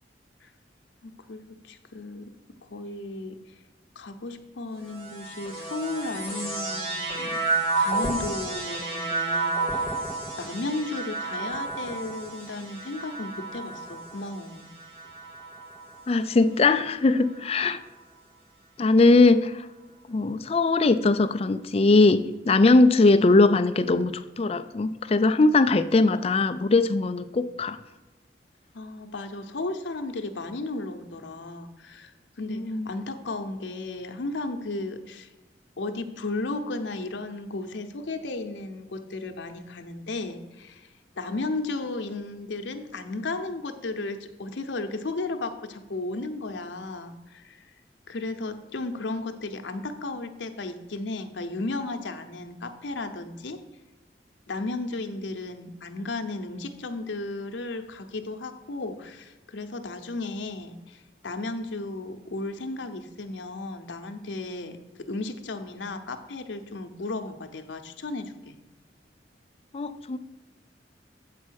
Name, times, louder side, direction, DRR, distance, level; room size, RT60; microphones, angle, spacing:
voice 1, 1.0-2.3 2.6-3.5 4.0-7.4 7.8-9.9 10.4-14.7 23.0-23.1 28.7-32.1 32.4-35.3 35.8-40.9 41.2-47.6 48.1-53.6 54.5-68.6, left 2 dB, 85° left, 7 dB, 0.8 m, -34 dB
sound 1, 4.8-16.3 17.1-17.8, right 3 dB, 30° right, 2.3 m, -31 dB
voice 2, 16.1-17.8 18.8-19.7 20.1-22.2 22.4-27.8 32.5-32.9 69.7-70.2, left 3 dB, 35° left, 11 dB, 0.4 m, -20 dB
8.4 x 4.2 x 6.3 m, 1.1 s
head